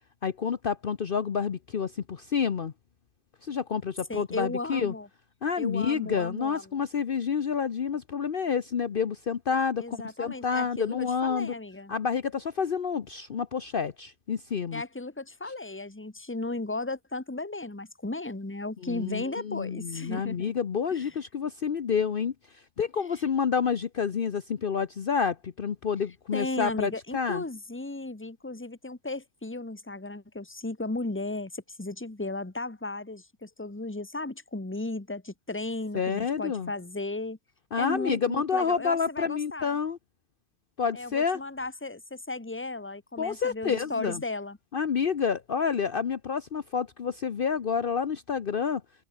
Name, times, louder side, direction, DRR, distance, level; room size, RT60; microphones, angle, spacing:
voice 1, 0.2-2.7 3.4-4.9 5.4-11.5 11.9-14.8 18.8-22.3 22.8-27.4 35.9-36.7 37.7-40.0 40.8-41.4 43.2-44.2 44.7-48.8, left 6 dB, 50° left, 1.0 m, -29 dB
voice 2, 4.1-5.1 5.6-6.8 9.8-11.9 14.7-20.5 20.9-21.2 26.3-37.4 37.8-39.7 40.9-44.6, left 2 dB, 10° left, 1.4 m, -35 dB
omnidirectional pair, 1.2 m